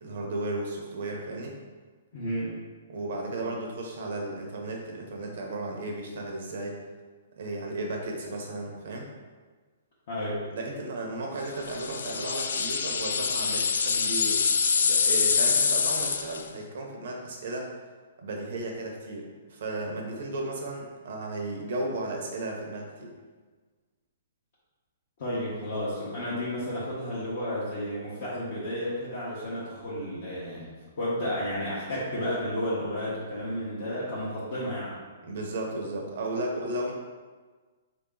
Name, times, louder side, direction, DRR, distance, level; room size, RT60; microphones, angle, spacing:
voice 1, 0.0-1.5 2.9-6.8 7.4-9.1 10.5-17.7 18.2-23.1 35.2-36.9, right 2 dB, 50° right, 0 dB, 0.8 m, -34 dB
voice 2, 2.1-2.6 10.1-10.4 25.2-30.7 31.0-35.0, equal, 40° left, -9 dB, 1.0 m, -32 dB
sound 1, 11.6-16.5, left 5 dB, 75° left, 0.3 m, -25 dB
4.5 x 2.9 x 3.7 m, 1.4 s
hypercardioid pair, 175°, 0 cm